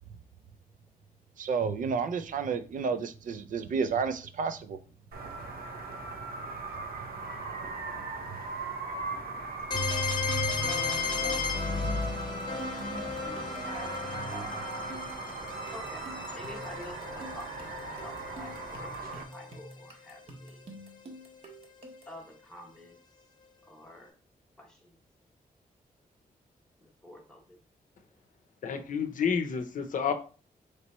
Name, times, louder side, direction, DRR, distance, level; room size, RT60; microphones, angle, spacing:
voice 1, 1.4-4.8, right 5 dB, 60° right, 0.4 m, -31 dB
sound 1, 5.1-19.2, right 3 dB, 90° right, 0.8 m, -39 dB
sound 2, 9.7-19.4, left 4 dB, 30° left, 0.9 m, -34 dB
sound 3, 9.9-22.2, right 1 dB, 45° right, 0.8 m, -49 dB
voice 2, 15.7-20.6 22.1-23.0 23.7-24.2 24.6-25.0 26.8-27.6, left 1 dB, 5° left, 0.9 m, -49 dB
voice 3, 28.6-30.1, left 6 dB, 60° left, 0.6 m, -29 dB
3.2 x 3.0 x 4.2 m
wide cardioid pair, 160°, 15 cm